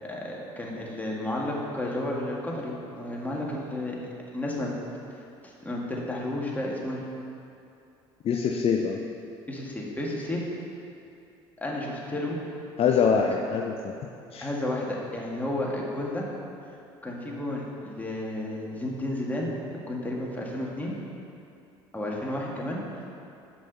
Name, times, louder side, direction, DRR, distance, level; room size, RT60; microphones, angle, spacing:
voice 1, 0.0-4.0 4.3-4.7 5.4-7.0 9.5-10.5 11.6-12.4 13.0-13.1 14.4-16.3 17.0-20.9 21.9-22.8, left 1 dB, 10° left, -3 dB, 1.9 m, -32 dB
voice 2, 8.2-9.0 12.8-13.9 14.3-14.5, left 6 dB, 45° left, 2 dB, 0.6 m, -24 dB
6.1 x 5.9 x 6.6 m, 2.7 s
hypercardioid pair, 70°, 13 cm